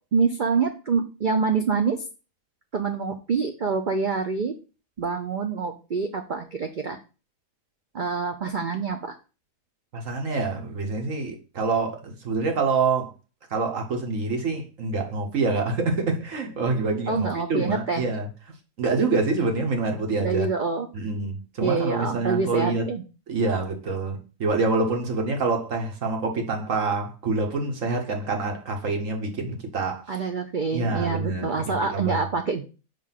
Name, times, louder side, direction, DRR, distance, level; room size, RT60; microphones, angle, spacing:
voice 1, 0.1-2.0 2.7-4.5 5.0-7.0 7.9-9.1 17.1-18.1 20.2-20.9 21.6-23.0 30.1-32.6, right 5 dB, 80° right, 0.4 m, -26 dB
voice 2, 9.9-13.1 13.5-18.3 18.8-20.5 20.9-22.9 23.3-30.0 30.7-32.3, right 3 dB, 55° right, 1.4 m, -26 dB
5.3 x 3.3 x 5.7 m
omnidirectional pair, 1.7 m